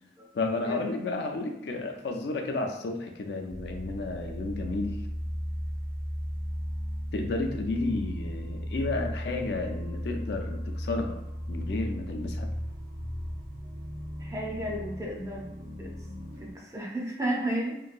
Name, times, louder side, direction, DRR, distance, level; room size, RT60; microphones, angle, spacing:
voice 1, 0.3-5.0 7.1-11.2 11.5-12.5, left 3 dB, 70° left, 4 dB, 0.4 m, -32 dB
sound 1, 3.5-16.5, equal, 80° right, 0.7 m, -36 dB
voice 2, 14.2-15.5 15.8-15.9 16.4-17.7, right 1 dB, 15° right, -2 dB, 0.5 m, -33 dB
3.0 x 2.3 x 2.5 m, 0.88 s
head